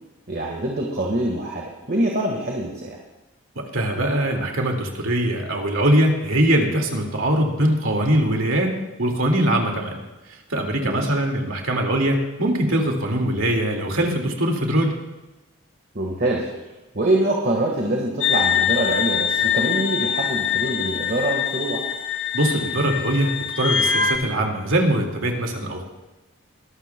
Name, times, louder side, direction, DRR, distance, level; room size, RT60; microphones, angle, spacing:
voice 1, 0.3-3.0 10.8-11.1 15.9-16.5 16.9-21.8, right 1 dB, 45° right, -1 dB, 1.6 m, -24 dB
voice 2, 3.7-8.7 9.0-10.0 10.5-14.9 22.3-25.9, right 1 dB, 80° right, 1 dB, 2.2 m, -22 dB
sound 1, 18.2-24.2, left 7 dB, 70° left, 1.2 m, -23 dB
22.0 x 12.5 x 2.3 m, 1.1 s
head